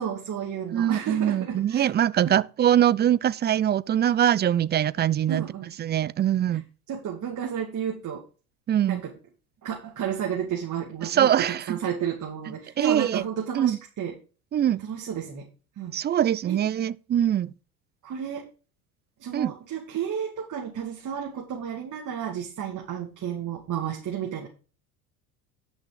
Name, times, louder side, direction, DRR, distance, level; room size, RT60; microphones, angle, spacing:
voice 1, 0.0-1.9 2.2-2.4 5.3-5.7 6.5-6.6 6.9-8.2 8.8-9.1 9.6-14.2 14.8-15.5 15.8-16.0 16.5-16.6 18.0-18.5 19.2-24.5, right 8 dB, 45° right, 2.4 m, -32 dB
voice 2, 0.7-5.5 5.8-6.6 8.7-9.0 11.0-11.8 12.8-13.2 13.5-13.8 14.5-14.8 15.9-17.5 19.3-19.5, right 10 dB, 25° right, 0.4 m, -23 dB
10.5 x 6.4 x 4.8 m
hypercardioid pair, 80°, 43 cm